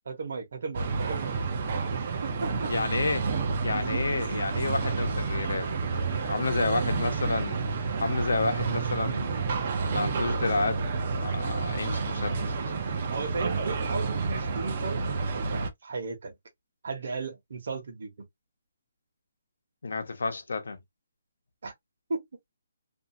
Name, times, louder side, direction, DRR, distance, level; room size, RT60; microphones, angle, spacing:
voice 1, 0.1-1.4 2.2-2.7 3.7-4.0 6.5-6.8 13.1-16.3 16.8-18.1 21.6-21.7 22.1-22.3, right 4 dB, 50° right, 1.0 m, -35 dB
sound 1, 0.7-15.7, right 4 dB, 30° right, 0.5 m, -30 dB
voice 2, 2.7-3.3 3.6-7.6 8.0-9.4 9.9-10.9 11.1-12.5 19.8-20.8, left 3 dB, 85° left, 0.8 m, -30 dB
2.6 x 2.4 x 2.6 m
hypercardioid pair, 180°, 0 cm